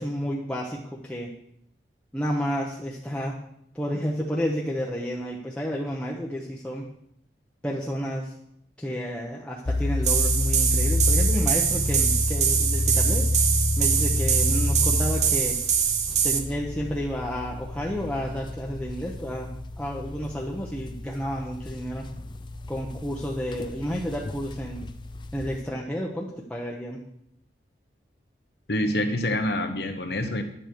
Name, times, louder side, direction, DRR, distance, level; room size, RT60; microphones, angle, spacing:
voice 1, 0.0-1.3 2.1-3.3 3.7-6.9 7.6-8.3 8.8-13.3 13.8-15.6 16.2-19.5 19.8-22.1 22.7-24.8 25.3-27.0, equal, 5° left, -3 dB, 0.8 m, -31 dB
sound 1, 9.7-25.6, left 2 dB, 25° left, 0.4 m, -29 dB
sound 2, 10.0-16.4, right 7 dB, 40° right, 0.8 m, -24 dB
voice 2, 28.7-30.4, left 1 dB, 65° left, 7 dB, 1.0 m, -26 dB
9.9 x 7.0 x 4.6 m, 0.75 s
head